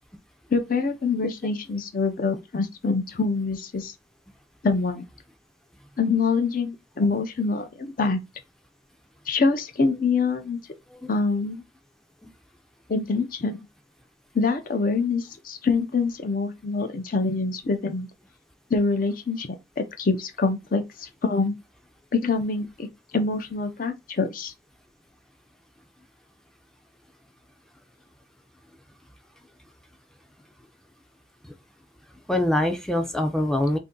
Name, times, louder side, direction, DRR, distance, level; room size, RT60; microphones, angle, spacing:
voice 1, 0.5-3.9 4.6-5.0 6.0-8.2 9.3-10.6 11.1-11.6 12.9-13.6 14.3-18.1 18.7-19.5 19.8-21.5 22.1-22.9 23.1-24.5, left 4 dB, 50° left, 0.5 m, -25 dB
voice 2, 32.3-33.8, left 1 dB, 5° left, 0.4 m, -24 dB
2.6 x 2.6 x 3.7 m
head